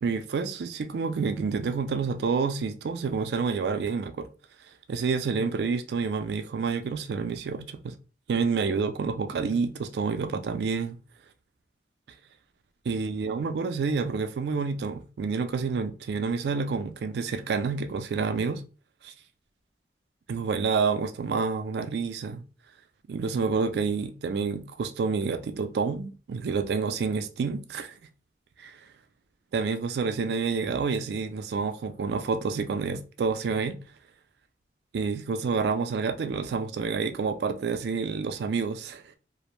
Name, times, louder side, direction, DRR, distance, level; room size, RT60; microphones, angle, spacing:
voice 1, 0.0-4.3 4.9-7.9 8.3-11.0 12.9-18.6 19.0-19.1 20.3-22.4 23.1-27.9 28.6-28.8 29.5-33.8 34.9-39.2, right 5 dB, 65° right, 0.3 m, -28 dB
2.4 x 2.1 x 3.0 m
head